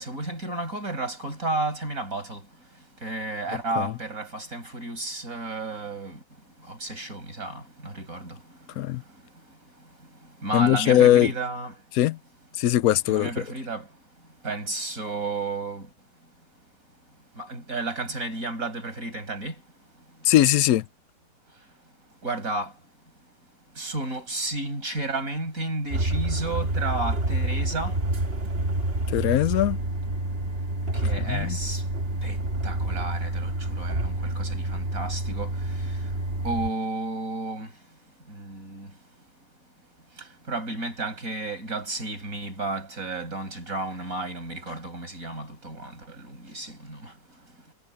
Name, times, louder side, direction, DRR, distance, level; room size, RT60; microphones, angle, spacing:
voice 1, 0.0-2.4 3.0-6.2 6.7-8.4 10.4-11.7 13.1-13.9 14.4-15.9 17.4-19.5 22.2-22.7 23.8-28.0 30.9-31.8 32.2-36.0 36.4-37.7 38.3-38.9 40.5-47.1, right 2 dB, 60° right, 6.4 m, -32 dB
voice 2, 3.5-3.9 8.8-9.0 10.5-11.3 11.9-12.2 12.6-13.3 20.2-20.8 29.1-29.8 31.2-31.6, left 13 dB, 70° left, 1.0 m, -20 dB
sound 1, 25.9-36.7, right 1 dB, 40° right, 2.0 m, -28 dB
omnidirectional pair, 1.7 m